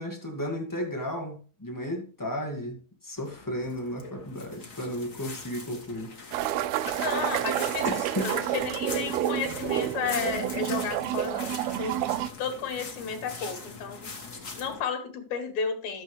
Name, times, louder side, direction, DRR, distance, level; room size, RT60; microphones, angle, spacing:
voice 1, 0.0-6.1 7.8-8.3, equal, 10° left, 0.9 m, -34 dB
sound 1, 3.2-14.8, left 4 dB, 30° left, 1.8 m, -42 dB
sound 2, 6.3-12.3, right 12 dB, 90° right, 1.5 m, -29 dB
voice 2, 7.0-7.9 8.2-11.5 11.8-14.1 14.6-16.0, left 6 dB, 65° left, 2.9 m, -33 dB
13.0 x 8.1 x 3.3 m
omnidirectional pair, 3.6 m